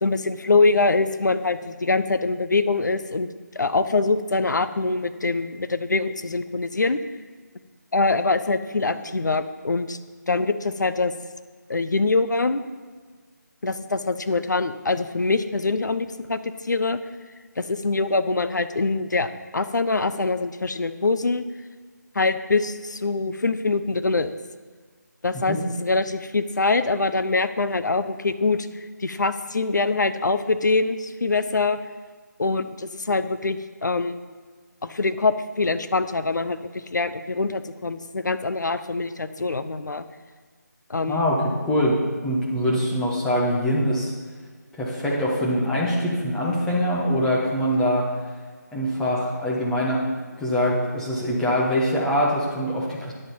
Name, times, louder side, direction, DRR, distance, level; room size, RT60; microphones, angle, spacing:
voice 1, 0.0-3.3 3.6-7.0 7.9-10.0 10.3-11.1 11.7-12.6 13.6-17.0 17.6-19.3 19.5-21.4 22.1-24.3 25.2-31.8 32.4-34.2 34.8-40.0 40.9-41.4, left 3 dB, 70° left, 11 dB, 0.7 m, -24 dB
voice 2, 41.1-42.0 42.2-44.1 44.7-48.1 48.7-50.0 50.4-53.1, equal, 5° left, -5 dB, 1.2 m, -23 dB
9.8 x 7.8 x 5.4 m, 1.5 s
figure-of-eight pair, 160°, 10 cm